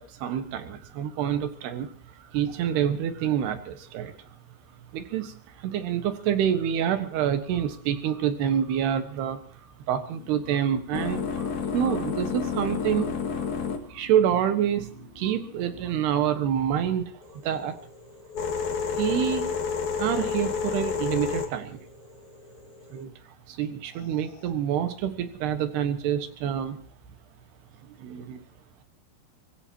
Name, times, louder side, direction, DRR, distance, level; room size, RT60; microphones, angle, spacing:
voice 1, 0.0-4.3 4.9-9.4 9.9-13.5 13.9-17.8 19.0-19.5 20.0-21.8 22.9-23.1 23.5-26.8 27.8-28.4, right 9 dB, 80° right, 8 dB, 3.6 m, -27 dB
sound 1, 10.1-16.4 17.2-23.0 24.0-24.5, left 6 dB, 55° left, 2.9 m, -31 dB
25.0 x 19.0 x 2.9 m, 0.43 s
omnidirectional pair, 4.6 m